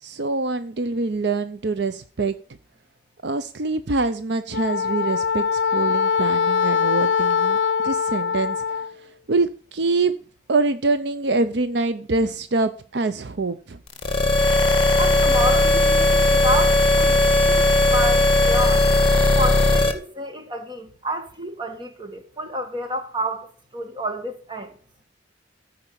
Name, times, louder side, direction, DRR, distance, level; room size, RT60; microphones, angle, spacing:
voice 1, 0.0-2.3 3.2-7.6 7.8-10.1 10.5-13.8, right 3 dB, 60° right, 0.6 m, -25 dB
Wind instrument woodwind instrument, 4.5-8.9, left 6 dB, 70° left, 0.6 m, -22 dB
sound 1, 13.9-19.9, left 2 dB, 30° left, 1.9 m, -17 dB
voice 2, 15.0-18.9 19.4-24.7, equal, 25° right, 1.9 m, -29 dB
14.5 x 5.1 x 8.5 m
head